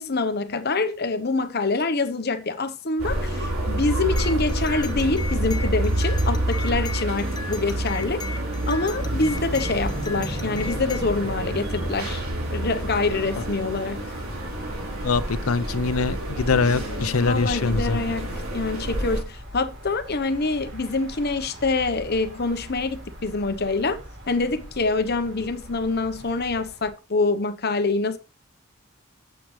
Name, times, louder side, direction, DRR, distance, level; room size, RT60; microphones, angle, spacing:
voice 1, 0.0-8.2 8.7-12.2 12.5-14.1 16.7-24.0 24.3-28.2, left 3 dB, 50° left, 1.0 m, -26 dB
sound 1, 3.0-19.2, right 1 dB, 80° right, 3.9 m, -28 dB
sound 2, 4.1-11.0, left 4 dB, 20° left, 0.7 m, -38 dB
sound 3, 8.7-27.0, equal, 55° right, 4.6 m, -40 dB
voice 2, 15.0-18.0, left 4 dB, 85° left, 0.7 m, -23 dB
9.3 x 7.8 x 3.3 m
head